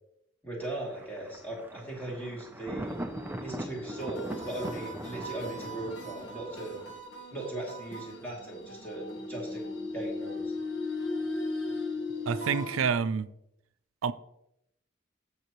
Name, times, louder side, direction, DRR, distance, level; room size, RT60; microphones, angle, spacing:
voice 1, 0.4-3.0 3.4-6.7 7.3-9.6 9.9-10.5, right 2 dB, 10° left, 2.6 m, -38 dB
Thunder, 0.6-7.0, right 1 dB, 10° right, 0.5 m, -41 dB
sound 1, 2.9-12.9, left 2 dB, 60° left, 1.3 m, -38 dB
voice 2, 12.3-13.3 14.0-14.1, right 6 dB, 85° right, 0.5 m, -28 dB
15.0 x 5.5 x 3.0 m
head